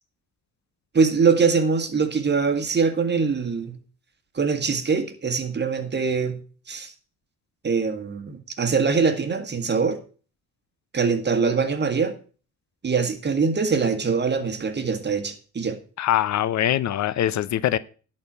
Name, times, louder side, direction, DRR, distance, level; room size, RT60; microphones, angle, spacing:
voice 1, 0.9-3.8 4.4-6.4 6.7-6.9 7.6-10.0 10.9-12.1 12.8-15.8, right 5 dB, 35° right, 1.8 m, -23 dB
voice 2, 16.0-17.8, left 12 dB, 65° left, 0.7 m, -23 dB
11.0 x 4.4 x 7.8 m
cardioid pair, 90°, 30 cm